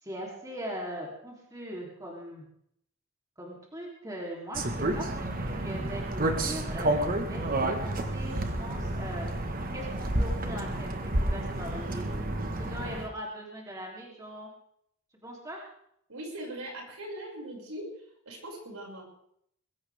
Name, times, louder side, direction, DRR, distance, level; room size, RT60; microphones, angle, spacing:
voice 1, 0.0-2.4 3.4-9.3 9.7-12.1 12.6-14.5 15.2-15.6, equal, 15° right, -2 dB, 3.3 m, -40 dB
sound 1, 4.5-13.1, right 1 dB, 40° right, 1.5 m, -30 dB
voice 2, 16.1-17.8 18.2-19.0, right 1 dB, 75° right, -1 dB, 6.3 m, -40 dB
22.0 x 16.5 x 3.6 m, 0.71 s
head